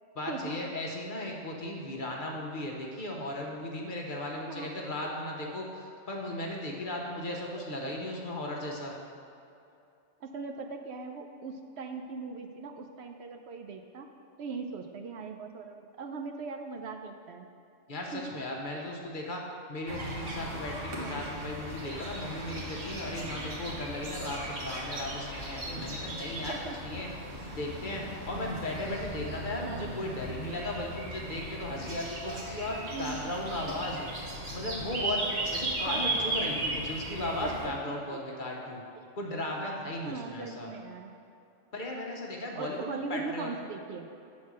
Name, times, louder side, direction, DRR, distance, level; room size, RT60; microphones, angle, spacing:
voice 1, 0.1-8.9 17.9-19.4 19.7-26.6 26.8-27.1 27.5-34.1 34.5-38.8 39.2-40.7 41.7-43.5, left 1 dB, 45° left, -1 dB, 1.0 m, -36 dB
voice 2, 7.2-7.7 10.2-14.1 14.4-17.5 18.1-18.2 18.7-18.9 21.0-21.2 26.5-26.8 29.6-29.9 32.9-33.2 35.9-36.6 37.4-37.9 40.0-41.1 42.5-44.1, right 4 dB, 70° right, 4 dB, 0.8 m, -40 dB
sound 1, 19.9-37.7, right 1 dB, 90° right, 1.6 m, -37 dB
7.7 x 4.2 x 6.1 m, 2.6 s
omnidirectional pair, 1.2 m